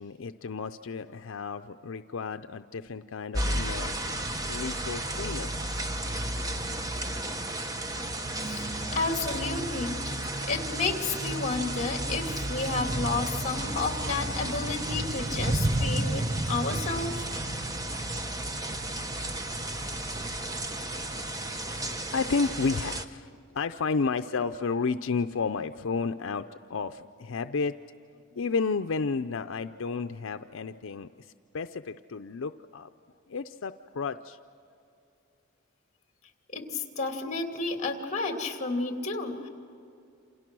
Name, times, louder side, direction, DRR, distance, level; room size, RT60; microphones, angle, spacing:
voice 1, 0.0-4.0 4.5-5.5 21.7-23.3 23.5-27.7 28.3-32.9 33.3-34.4, left 4 dB, 75° left, 9 dB, 0.5 m, -32 dB
sound 1, 3.3-23.0, right 1 dB, 15° right, 0.9 m, -32 dB
voice 2, 8.3-17.3 36.5-39.5, left 3 dB, 35° left, 3 dB, 2.6 m, -31 dB
28.5 x 28.0 x 6.2 m, 2.6 s
head